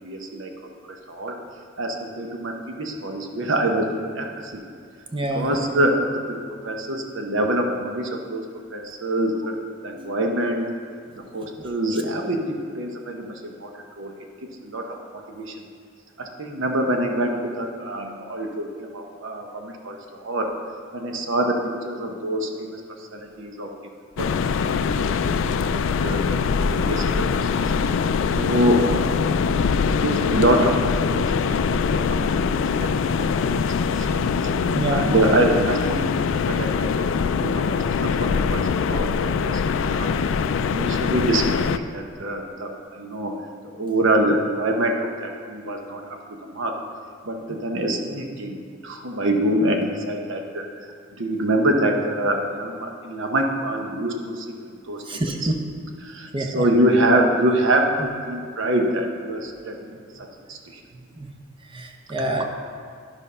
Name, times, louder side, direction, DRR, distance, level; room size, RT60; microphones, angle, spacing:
voice 1, 0.0-1.4 1.8-4.6 5.3-8.4 8.7-10.7 11.2-14.1 14.4-15.6 16.2-20.5 20.9-23.7 24.2-27.7 28.3-29.4 30.0-31.6 31.9-37.1 37.4-40.3 40.7-43.3 43.8-46.8 47.2-50.9 51.2-55.0 55.4-55.5 56.0-60.8, right 1 dB, 65° right, 3 dB, 0.9 m, -25 dB
voice 2, 5.1-5.5 11.2-11.3 11.6-11.7 18.4-18.6 34.7-35.1 47.5-47.6 55.0-55.6 56.3-56.7 61.1-61.3 61.7-62.4, right 1 dB, 25° right, 3 dB, 0.7 m, -27 dB
sound 1, 24.2-41.8, left 5 dB, 65° left, 0.3 m, -23 dB
11.0 x 5.3 x 5.5 m, 2.2 s
head